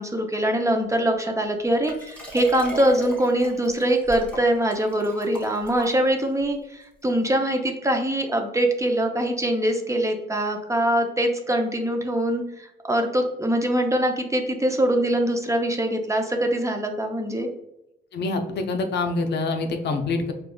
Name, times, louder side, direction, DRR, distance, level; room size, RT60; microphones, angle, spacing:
voice 1, 0.0-17.5, right 1 dB, 15° right, 3 dB, 0.5 m, -23 dB
Liquid, 1.8-6.4 7.1-7.2, equal, 5° left, 1.0 m, -39 dB
voice 2, 18.1-20.3, left 3 dB, 60° left, 5 dB, 0.5 m, -26 dB
4.6 x 2.3 x 2.2 m, 0.87 s
cardioid pair, 90°, 20 cm